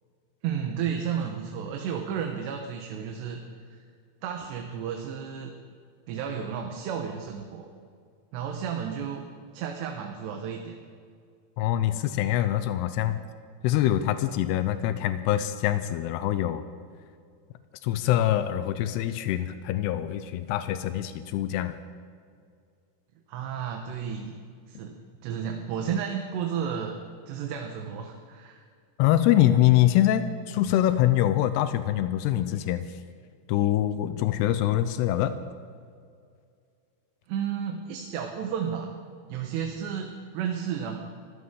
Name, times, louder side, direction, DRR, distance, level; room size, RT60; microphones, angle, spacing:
voice 1, 0.4-3.4 3.7-3.8 4.2-5.5 6.1-7.7 8.3-9.3 9.5-10.8 23.3-24.4 24.7-25.0 25.2-27.0 27.3-28.6 37.3-38.9 39.3-41.0, right 7 dB, 90° right, 3 dB, 3.2 m, -32 dB
voice 2, 11.6-13.2 13.6-16.6 17.8-21.8 29.0-32.9 33.5-35.4, left 12 dB, 90° left, 11 dB, 2.7 m, -24 dB
25.0 x 15.5 x 3.7 m, 2.2 s
omnidirectional pair, 4.8 m